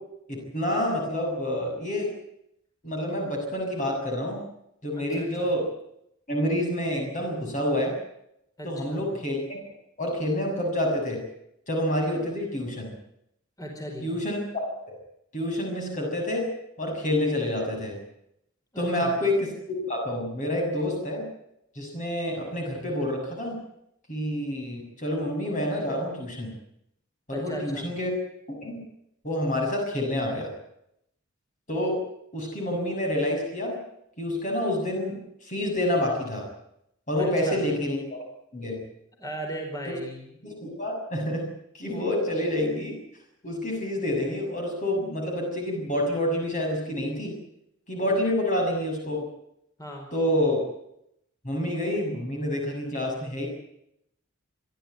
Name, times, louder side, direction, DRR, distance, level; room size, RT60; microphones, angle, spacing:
voice 1, 0.3-2.1 2.8-4.4 4.8-5.7 6.3-8.0 8.7-9.6 10.0-11.2 11.7-12.9 14.0-14.4 14.7-15.0 15.3-16.5 16.8-18.0 18.8-21.3 21.8-23.6 24.1-26.5 27.3-28.1 28.6-28.8 29.2-30.5 31.7-32.0 32.3-33.8 34.2-36.4 37.1-38.2 38.5-38.8 39.9-40.0 40.6-43.0 43.4-47.3 47.9-49.3 50.1-50.6 51.4-53.5, left 1 dB, 35° left, 0 dB, 6.9 m, -28 dB
voice 2, 4.9-5.5 8.6-9.0 13.6-14.1 18.7-19.2 27.3-27.9 37.2-37.6 39.2-40.4 49.8-50.1, right 1 dB, 15° left, 2 dB, 4.6 m, -37 dB
29.0 x 12.5 x 9.4 m, 0.77 s
head